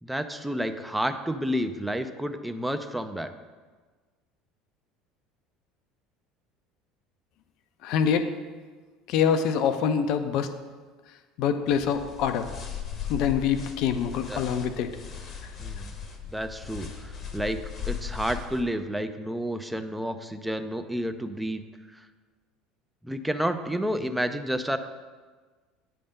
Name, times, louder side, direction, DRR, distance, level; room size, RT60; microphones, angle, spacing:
voice 1, 0.0-3.3 14.3-14.4 15.6-15.8 16.3-17.6 17.9-21.6 21.9-22.0 23.0-24.8, equal, 5° right, 9 dB, 0.5 m, -30 dB
voice 2, 7.8-8.3 9.1-10.5 11.4-12.5 13.1-14.9, left 7 dB, 50° left, 9 dB, 0.4 m, -25 dB
sound 1, 11.7-18.6, left 8 dB, 35° left, 0.8 m, -37 dB
9.1 x 3.4 x 5.2 m, 1.4 s
figure-of-eight pair, 65°, 0 cm